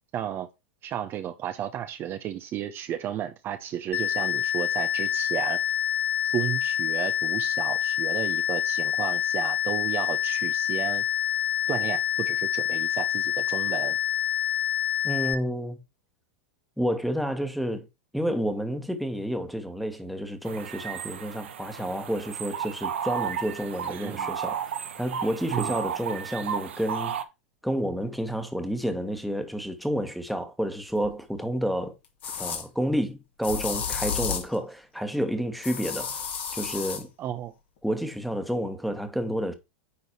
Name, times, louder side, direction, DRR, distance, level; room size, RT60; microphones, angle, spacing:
voice 1, 0.1-0.5 0.8-5.6 6.2-11.0 11.7-14.0 23.9-24.3 25.5-25.7 37.2-37.5, right 10 dB, 35° right, 0.9 m, -33 dB
sound 1, 3.9-15.3, left 11 dB, 30° left, 1.5 m, -27 dB
voice 2, 15.0-15.8 16.8-17.9 18.1-24.6 25.0-27.1 27.6-32.0 32.4-36.3 36.5-37.1 37.8-39.5, equal, ahead, 1.6 m, -30 dB
sound 2, 20.4-27.2, right 8 dB, 75° right, 1.0 m, -33 dB
sound 3, 31.0-31.1 32.2-32.6 33.4-34.5 35.6-37.0, left 7 dB, 70° left, 2.4 m, -31 dB
9.7 x 4.0 x 4.5 m
hypercardioid pair, 95°, 6 cm